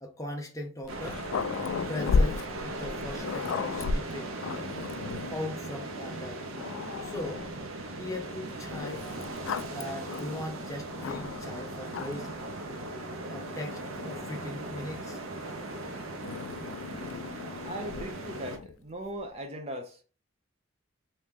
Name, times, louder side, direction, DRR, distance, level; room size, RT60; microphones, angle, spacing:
voice 1, 0.0-1.2 1.9-4.3 5.3-6.4 7.0-7.5 8.0-9.1 9.7-12.3 13.3-15.2, left 1 dB, 15° left, 0.7 m, -39 dB
Growling, 0.8-5.4 6.1-6.2 6.6-7.6 8.7-11.5 11.9-12.4 13.3-15.1 16.2-18.8, left 4 dB, 65° left, 0.3 m, -34 dB
sound 1, 0.9-18.6, right 2 dB, 75° right, 0.7 m, -38 dB
voice 2, 17.6-20.0, right 1 dB, 30° right, 0.7 m, -39 dB
3.2 x 2.8 x 3.5 m
head